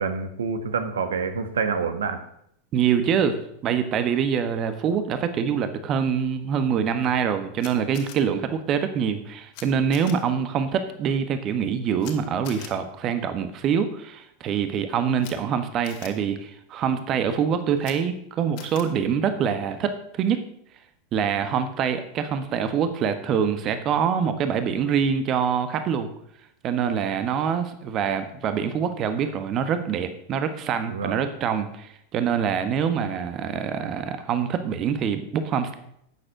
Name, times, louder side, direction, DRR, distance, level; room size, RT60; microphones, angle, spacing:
voice 1, 0.0-2.2 30.9-31.3, right 5 dB, 70° right, 9 dB, 1.4 m, -27 dB
voice 2, 2.7-20.4 21.1-26.1 26.6-35.8, right 7 dB, 35° right, 9 dB, 1.3 m, -25 dB
Camera, 7.6-8.2 9.5-9.6 9.9-10.1 12.0-12.1 12.4-12.7 15.2-15.3 15.8-16.1 17.8-17.9 18.6-18.8, left 11 dB, 50° left, 2.2 m, -41 dB
12.5 x 8.9 x 6.5 m, 0.73 s
figure-of-eight pair, 90°, 0 cm